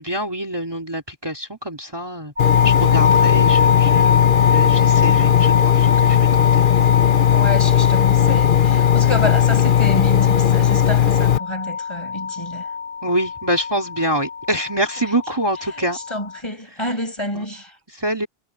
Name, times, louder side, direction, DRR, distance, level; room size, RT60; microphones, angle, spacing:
voice 1, 0.0-2.3 2.6-6.6 13.0-16.0 17.3-17.4 17.9-18.3, right 1 dB, 25° right, 3.0 m, -25 dB
Engine, 2.4-11.4, left 10 dB, 55° left, 0.9 m, -16 dB
sound 1, 2.4-16.4, left 6 dB, 60° right, 3.0 m, -23 dB
voice 2, 7.3-12.7 15.9-17.8, left 1 dB, 25° left, 6.1 m, -28 dB
omnidirectional pair, 1.1 m